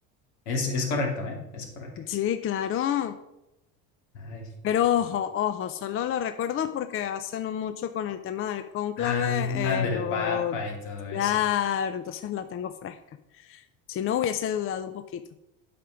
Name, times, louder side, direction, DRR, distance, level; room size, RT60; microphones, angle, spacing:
voice 1, 0.5-1.9 4.1-4.5 9.0-11.3, left 4 dB, 80° left, 1 dB, 2.5 m, -30 dB
voice 2, 2.0-3.1 4.6-10.6 11.1-13.0 13.5-13.6 13.9-15.2, left 10 dB, 35° left, 10 dB, 0.5 m, -28 dB
8.6 x 5.1 x 5.8 m, 0.91 s
supercardioid pair, 105°, 35 cm